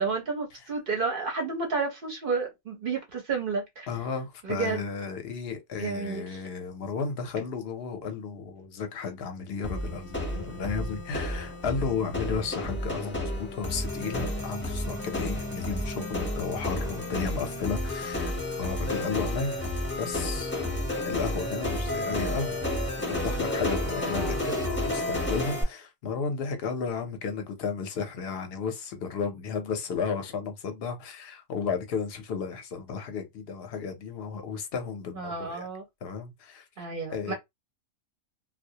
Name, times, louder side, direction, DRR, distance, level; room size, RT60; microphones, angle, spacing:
voice 1, 0.0-3.9 4.4-4.8 5.8-6.4 24.0-24.4 35.2-35.8 36.8-37.3, right 4 dB, 55° right, 0.6 m, -31 dB
voice 2, 3.9-19.7 19.9-20.5 21.1-22.6 23.2-35.7 36.0-36.7 37.1-37.3, left 5 dB, 60° left, 0.7 m, -33 dB
sound 1, 9.6-25.6, left 1 dB, 10° left, 0.6 m, -31 dB
2.3 x 2.1 x 2.7 m
omnidirectional pair, 1.5 m